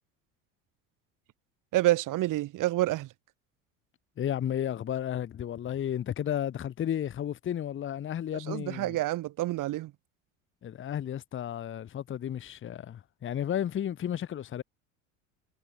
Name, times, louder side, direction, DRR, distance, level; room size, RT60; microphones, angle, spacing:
voice 1, 1.7-3.1 8.5-9.9, right 16 dB, 50° right, 1.8 m, -28 dB
voice 2, 4.2-9.0 10.6-14.6, left 10 dB, 30° left, 1.0 m, -33 dB
hypercardioid pair, 75°, 40 cm